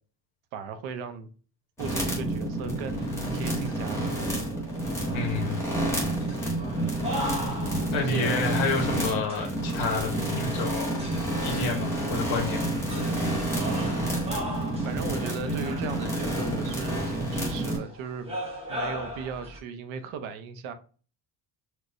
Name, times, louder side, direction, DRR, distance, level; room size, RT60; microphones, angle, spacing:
voice 1, 0.5-1.3 1.8-4.1 7.9-8.5 13.4-14.2 14.8-18.4 18.7-20.7, right 6 dB, 80° right, 0.8 m, -37 dB
sound 1, 1.8-17.8, right 1 dB, 5° left, 1.1 m, -29 dB
sound 2, 3.0-19.6, equal, 15° right, 0.7 m, -40 dB
voice 2, 5.1-5.6 7.9-10.9 11.4-12.8, left 3 dB, 80° left, 1.1 m, -29 dB
4.5 x 2.2 x 2.5 m
cardioid pair, 180°, 47 cm